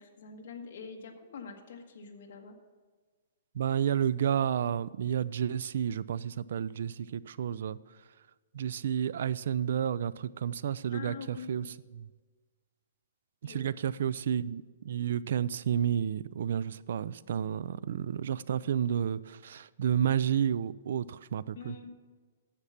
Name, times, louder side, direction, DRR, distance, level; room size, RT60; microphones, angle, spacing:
voice 1, 0.0-2.6 10.9-11.7 13.4-13.8 21.5-21.9, left 5 dB, 50° left, 1.4 m, -45 dB
voice 2, 3.5-7.8 8.5-11.6 11.9-12.1 13.4-21.7, right 9 dB, 55° right, 0.3 m, -31 dB
9.9 x 7.3 x 5.7 m
hypercardioid pair, 175°, 0 cm